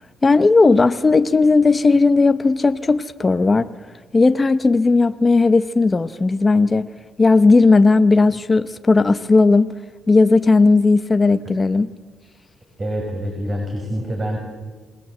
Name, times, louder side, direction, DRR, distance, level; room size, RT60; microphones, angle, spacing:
voice 1, 0.2-3.7 4.1-6.9 7.2-9.7 10.1-11.9, left 3 dB, 25° left, 0.8 m, -15 dB
voice 2, 12.8-14.4, equal, 35° right, 5.4 m, -26 dB
27.0 x 18.5 x 7.9 m
cardioid pair, 90°, 0 cm